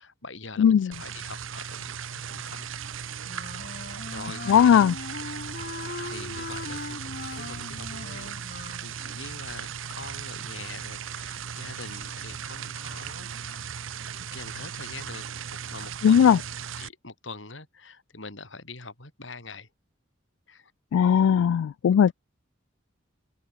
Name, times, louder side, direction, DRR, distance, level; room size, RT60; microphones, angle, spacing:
voice 1, 0.0-2.7 3.6-5.2 5.9-8.4 8.8-13.8 14.3-16.4 16.8-19.7 20.5-20.7 21.9-22.1, left 3 dB, 65° left, 5.5 m, -44 dB
voice 2, 0.6-0.9 4.5-4.9 16.0-16.4 20.9-22.1, left 8 dB, 85° left, 0.3 m, -18 dB
sound 1, 0.9-16.9, right 7 dB, 75° right, 0.8 m, -37 dB
Wind instrument woodwind instrument, 3.2-8.9, left 3 dB, 50° left, 0.9 m, -39 dB
open air
head